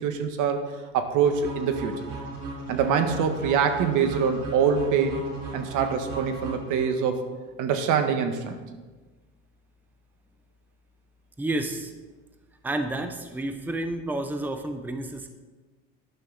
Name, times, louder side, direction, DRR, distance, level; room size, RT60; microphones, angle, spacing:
voice 1, 0.0-2.1 2.7-5.2 5.5-7.3 7.6-8.6, right 6 dB, 65° right, 7 dB, 1.5 m, -24 dB
sound 1, 1.2-7.2, right 2 dB, 85° right, 3.3 m, -37 dB
voice 2, 11.4-11.9 12.6-15.3, right 1 dB, 5° right, 7 dB, 0.8 m, -30 dB
12.0 x 11.0 x 4.0 m, 1.3 s
cardioid pair, 110°, 33 cm